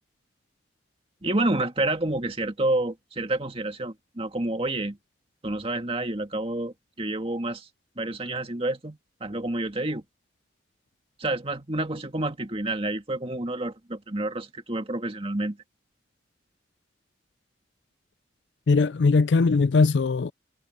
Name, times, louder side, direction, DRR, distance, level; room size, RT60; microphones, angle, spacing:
voice 1, 1.2-5.0 5.4-7.7 8.0-10.0 11.2-15.6, right 2 dB, 30° right, 2.0 m, -29 dB
voice 2, 18.7-20.3, left 4 dB, 70° left, 0.4 m, -20 dB
head